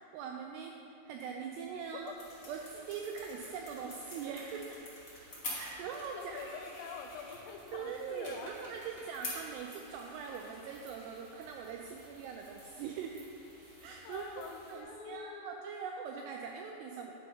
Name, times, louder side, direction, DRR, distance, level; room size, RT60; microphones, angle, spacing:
voice 1, 0.1-2.1 2.5-4.8 5.5-6.4 7.7-13.2 13.8-17.1, right 6 dB, 90° right, 2 dB, 2.3 m, -42 dB
sound 1, 1.4-12.9, left 1 dB, 50° left, 0.9 m, -49 dB
sound 2, 2.2-14.8, right 1 dB, 45° right, 2.1 m, -59 dB
voice 2, 6.1-8.5 14.0-15.6, left 6 dB, 80° left, 4 dB, 2.8 m, -45 dB
8.9 x 5.6 x 5.2 m, 3.0 s
omnidirectional pair, 5.3 m